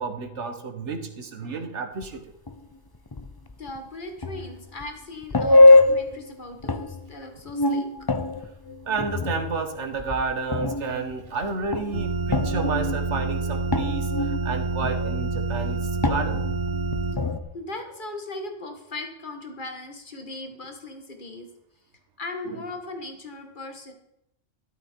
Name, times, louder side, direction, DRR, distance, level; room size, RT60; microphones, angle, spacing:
voice 1, 0.0-2.3 8.8-16.5 22.5-22.6, right 4 dB, 65° right, 7 dB, 1.6 m, -31 dB
sound 1, 2.0-2.1 2.5-2.6 2.9-3.8 4.2-4.8 5.2-6.3 6.6-7.1 7.4-10.3 10.5-17.4, left 2 dB, 25° left, 0.5 m, -23 dB
voice 2, 3.6-7.9 17.5-21.5 22.2-23.9, left 2 dB, 40° left, 5 dB, 1.9 m, -38 dB
sound 2, 11.9-17.2, right 3 dB, 45° right, 1.5 m, -28 dB
13.0 x 12.0 x 4.5 m, 0.83 s
omnidirectional pair, 1.3 m